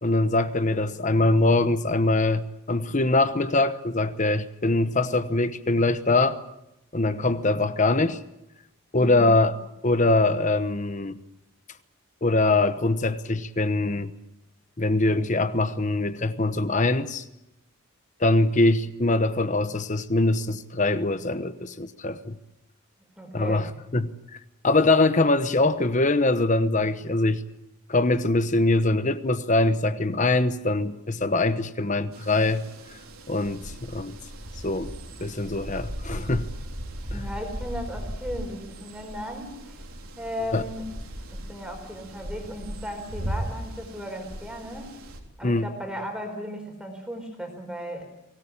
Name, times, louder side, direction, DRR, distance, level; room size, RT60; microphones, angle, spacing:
voice 1, 0.0-6.4 6.9-8.2 8.9-9.6 9.8-11.2 12.2-14.1 14.8-17.2 18.2-22.4 23.3-24.1 24.6-27.4 27.9-32.6 33.3-34.2 34.6-36.5 37.1-37.2 40.5-40.6 45.4-45.7, left 2 dB, 35° left, 12 dB, 1.0 m, -23 dB
voice 2, 9.0-9.4 23.2-23.7 37.1-39.8 40.2-40.9 41.3-44.9 45.4-48.0, equal, 5° right, 3 dB, 4.6 m, -36 dB
sound 1, 32.1-45.2, right 1 dB, 70° right, 3.5 m, -37 dB
23.5 x 18.5 x 8.6 m, 0.88 s
head